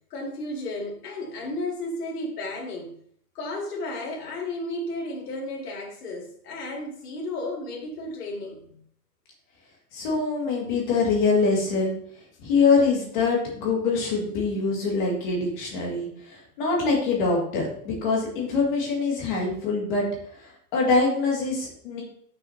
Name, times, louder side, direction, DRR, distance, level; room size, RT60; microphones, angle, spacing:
voice 1, 0.0-3.0 3.3-8.8, left 2 dB, 80° left, 0 dB, 2.6 m, -33 dB
voice 2, 9.9-12.0 12.4-20.1 20.4-22.0, left 4 dB, 30° left, -2 dB, 2.1 m, -24 dB
9.2 x 6.2 x 2.8 m, 0.64 s
supercardioid pair, 180°, 46 cm